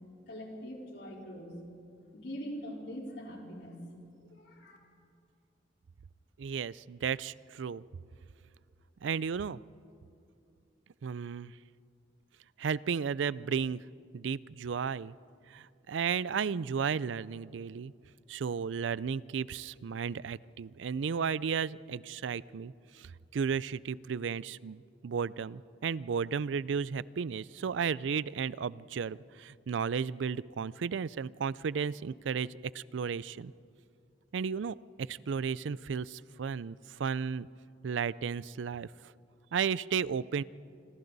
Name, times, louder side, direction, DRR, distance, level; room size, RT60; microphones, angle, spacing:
voice 1, 0.3-1.5 2.1-3.8 4.3-4.8, equal, 65° left, -1 dB, 4.3 m, -43 dB
voice 2, 6.4-7.8 9.0-9.6 11.0-11.5 12.6-13.8 14.1-15.1 15.5-17.9 18.3-33.5 34.3-37.5 37.8-39.1 39.5-40.4, right 6 dB, 85° right, 20 dB, 0.4 m, -34 dB
27.0 x 26.5 x 4.0 m, 2.5 s
head